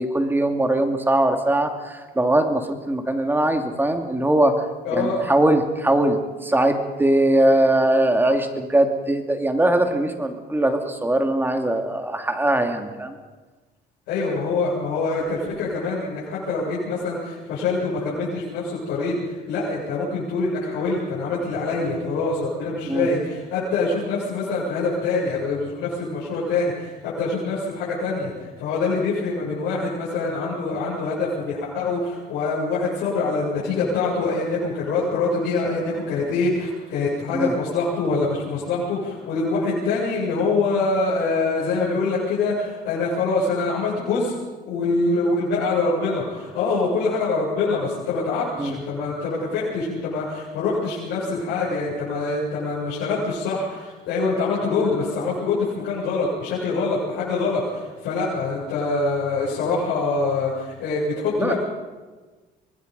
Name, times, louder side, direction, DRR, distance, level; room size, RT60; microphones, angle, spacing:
voice 1, 0.0-4.6 4.9-13.1 22.9-23.1 37.3-37.5 48.6-48.8 61.4-61.5, right 1 dB, 10° right, 5 dB, 2.5 m, -21 dB
voice 2, 4.8-5.3 14.1-28.3 28.6-44.3 44.7-61.6, left 3 dB, 85° left, -8 dB, 7.6 m, -24 dB
25.0 x 20.5 x 5.5 m, 1.3 s
cardioid pair, 110°, 17 cm